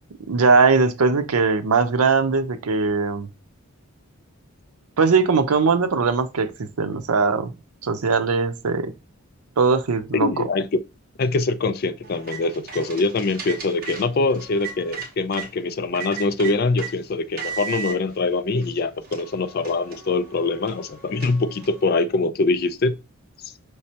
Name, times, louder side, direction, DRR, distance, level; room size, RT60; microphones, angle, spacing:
voice 1, 0.3-3.3 5.0-7.5 7.8-8.9 9.6-10.5, right 4 dB, 85° right, 0.6 m, -20 dB
voice 2, 10.1-10.7 11.2-23.0 23.4-23.5, left 3 dB, 45° left, 0.3 m, -23 dB
sound 1, 12.0-15.5 15.9-16.9 17.4-18.0 18.6-18.7 19.0-21.9, right 6 dB, 40° right, 1.0 m, -36 dB
5.2 x 3.1 x 2.8 m
head